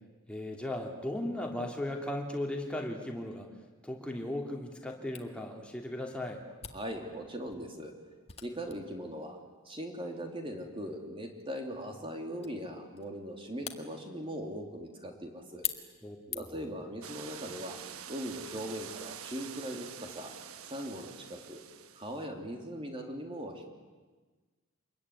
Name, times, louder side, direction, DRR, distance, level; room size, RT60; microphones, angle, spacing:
voice 1, 0.3-3.5 3.8-6.4 16.0-16.4, left 1 dB, 5° left, 1 dB, 2.8 m, -37 dB
Camera, 5.1-16.7, left 9 dB, 30° left, 1.7 m, -46 dB
voice 2, 6.7-7.9 8.4-9.4 9.6-15.7 16.3-17.8 18.1-20.3 20.7-21.6 22.0-23.7, equal, 25° right, 3 dB, 3.2 m, -40 dB
sound 1, 17.0-22.3, right 8 dB, 90° right, 1.2 m, -46 dB
26.5 x 21.5 x 9.8 m, 1.3 s
head